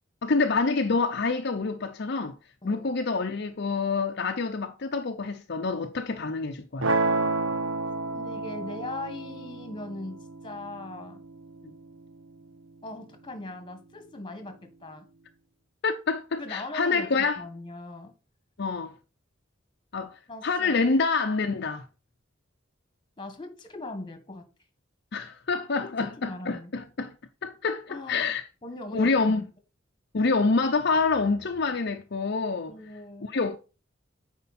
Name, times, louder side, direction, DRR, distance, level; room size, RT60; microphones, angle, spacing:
voice 1, 0.2-2.4 2.6-6.9 15.8-17.4 18.6-18.9 19.9-21.9 25.1-27.1 27.4-28.4 28.9-29.5 30.1-32.7 33.2-33.6, left 4 dB, 60° left, 0.7 m, -27 dB
sound 1, 6.8-12.8, right 3 dB, 75° right, 1.0 m, -31 dB
voice 2, 8.1-11.2 12.8-15.1 16.4-18.2 20.3-20.7 23.2-24.5 25.8-25.9 26.2-26.7 27.9-28.3 28.6-29.5 32.7-33.4, left 2 dB, 25° left, 1.6 m, -40 dB
9.5 x 4.6 x 4.2 m
head